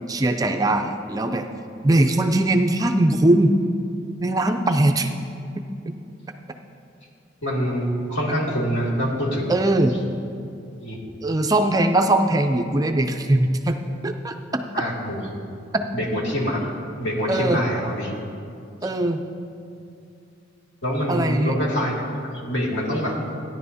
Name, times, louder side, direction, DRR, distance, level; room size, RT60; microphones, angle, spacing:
voice 1, 0.1-1.5 1.8-3.6 4.2-5.1 5.6-5.9 9.5-10.0 11.2-14.6 15.7-15.8 17.3-17.6 18.8-19.2 21.1-21.5, right 1 dB, 20° right, 5 dB, 0.4 m, -21 dB
voice 2, 7.4-9.5 10.8-11.0 14.7-15.2 15.9-16.7 17.0-18.1 20.8-21.9 22.3-23.2, equal, 70° left, -4 dB, 2.5 m, -25 dB
16.0 x 10.0 x 2.7 m, 2.5 s
head